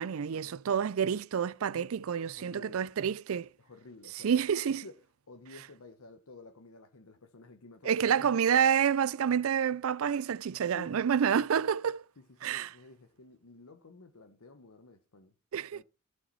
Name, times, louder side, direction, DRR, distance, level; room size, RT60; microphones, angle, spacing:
voice 1, 0.0-3.5 4.1-4.8 7.8-12.0 12.4-12.8 15.5-15.8, right 8 dB, 70° right, 0.4 m, -28 dB
voice 2, 2.2-2.9 3.6-4.4 4.7-5.0 5.3-8.3 10.7-11.2 12.2-15.3 15.7-15.8, left 3 dB, 90° left, 1.0 m, -52 dB
15.0 x 5.6 x 4.1 m
head